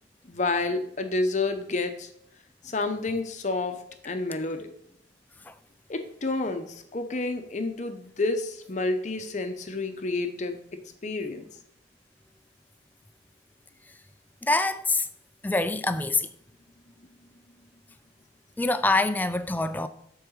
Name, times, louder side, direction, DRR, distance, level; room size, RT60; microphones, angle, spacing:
voice 1, 0.2-2.1 2.6-3.8 4.0-4.7 5.9-10.6 11.0-11.5, left 3 dB, 40° left, 0.7 m, -29 dB
voice 2, 14.4-15.1 15.4-16.3 18.6-19.9, left 2 dB, 10° left, 0.4 m, -25 dB
7.6 x 4.7 x 6.4 m
head